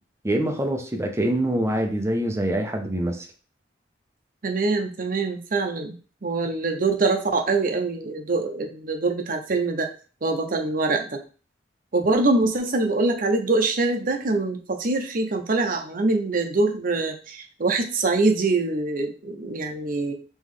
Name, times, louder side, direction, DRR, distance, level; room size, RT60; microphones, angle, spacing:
voice 1, 0.2-3.3, right 1 dB, 15° right, 3 dB, 0.7 m, -25 dB
voice 2, 4.4-5.9 6.2-9.9 10.2-11.2 11.9-20.1, right 3 dB, 50° right, 4 dB, 0.7 m, -24 dB
3.5 x 3.0 x 3.7 m, 0.38 s
head